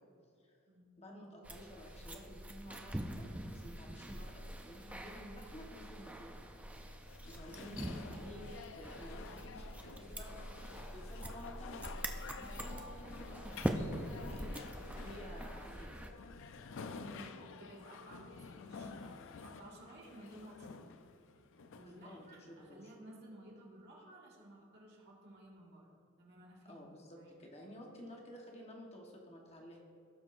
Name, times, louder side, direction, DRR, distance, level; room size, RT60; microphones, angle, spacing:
voice 1, 1.0-6.3 7.3-10.3 10.8-11.9 12.3-14.5 15.0-15.9 21.8-22.8 26.6-29.8, equal, 30° left, 0 dB, 1.2 m, -52 dB
sound 1, 1.4-16.1, right 1 dB, 5° right, 0.5 m, -44 dB
sound 2, 5.8-22.8, left 5 dB, 60° left, 0.4 m, -51 dB
voice 2, 16.8-20.9 21.3-25.9 26.2-26.8 27.1-27.4, right 1 dB, 50° right, -3 dB, 1.8 m, -56 dB
17.0 x 6.2 x 2.5 m, 2.5 s
head